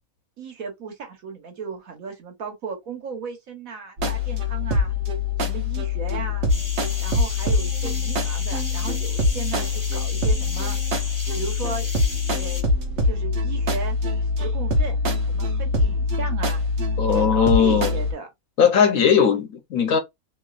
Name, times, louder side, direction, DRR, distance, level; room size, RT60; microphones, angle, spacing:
voice 1, 0.4-4.9 5.4-6.5 7.0-10.8 11.3-11.9 12.4-12.7 13.0-14.0 14.4-15.0 15.3-16.6 17.1-18.3 18.9-19.1, right 5 dB, 80° right, 1.5 m, -35 dB
sound 1, 4.0-18.1, left 3 dB, 60° right, 1.0 m, -24 dB
sound 2, 6.5-12.6, left 1 dB, 15° left, 0.8 m, -36 dB
voice 2, 17.0-17.9 18.6-20.0, left 7 dB, 80° left, 1.2 m, -18 dB
3.1 x 3.1 x 2.4 m
omnidirectional pair, 1.4 m